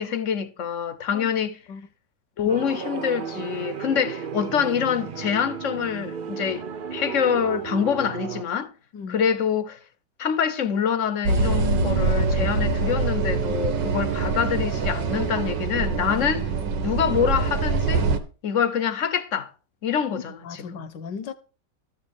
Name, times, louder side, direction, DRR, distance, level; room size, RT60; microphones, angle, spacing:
voice 1, 0.0-1.6 2.4-6.7 6.9-8.7 9.1-9.8 10.2-16.5 16.8-18.1 18.4-19.5 19.8-20.4 20.7-20.8, left 7 dB, 50° left, 1.2 m, -25 dB
sound 1, 2.5-8.4, right 7 dB, 50° right, 0.6 m, -34 dB
sound 2, 11.2-18.2, right 3 dB, 85° right, 2.0 m, -24 dB
voice 2, 20.4-21.3, left 6 dB, 80° left, 1.8 m, -36 dB
13.5 x 5.4 x 7.2 m
omnidirectional pair, 1.9 m